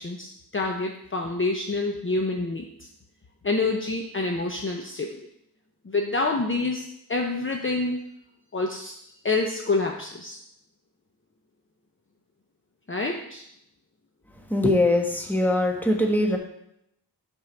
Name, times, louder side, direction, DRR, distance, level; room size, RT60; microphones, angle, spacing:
voice 1, 0.0-2.7 3.4-5.2 5.8-8.0 8.5-8.9 9.2-10.4 12.9-13.4, left 3 dB, 30° left, 1 dB, 0.7 m, -27 dB
voice 2, 14.5-16.4, left 1 dB, 5° left, 2 dB, 1.2 m, -22 dB
5.5 x 4.5 x 6.3 m, 0.77 s
wide cardioid pair, 70°, 39 cm